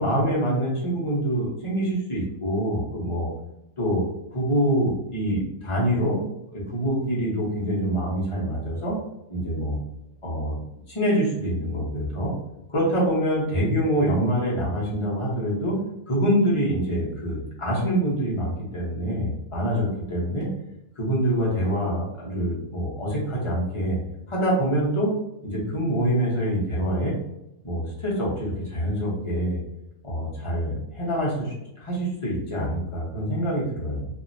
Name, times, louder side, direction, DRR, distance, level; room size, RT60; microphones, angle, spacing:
voice 1, 0.0-3.3 3.8-4.0 4.3-6.2 6.5-9.0 9.3-9.8 10.2-10.6 10.9-12.3 12.7-15.8 16.1-20.5 21.0-24.0 24.3-25.1 25.4-27.1 27.6-29.6 30.0-34.1, equal, 25° left, -5 dB, 0.8 m, -25 dB
2.8 x 2.7 x 2.6 m, 0.88 s
omnidirectional pair, 1.5 m